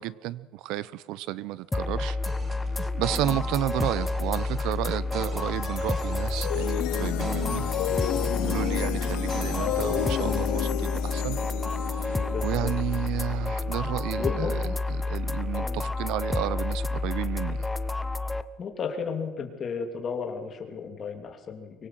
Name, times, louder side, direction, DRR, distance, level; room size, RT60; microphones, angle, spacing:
voice 1, 0.0-2.2 3.0-7.7 8.4-11.4 11.9-14.6 14.9-17.7, right 14 dB, 65° right, 18 dB, 0.9 m, -32 dB
sound 1, 1.7-18.4, left 3 dB, 10° left, 0.7 m, -29 dB
sound 2, 2.3-10.6, right 5 dB, 25° right, 1.2 m, -41 dB
sound 3, 5.3-14.6, left 16 dB, 70° left, 0.8 m, -32 dB
voice 2, 12.3-12.7 14.2-14.8 15.6-15.9 18.6-21.9, left 6 dB, 30° left, 4 dB, 3.0 m, -34 dB
24.0 x 24.0 x 7.8 m, 1.2 s
cardioid pair, 175°, 0 cm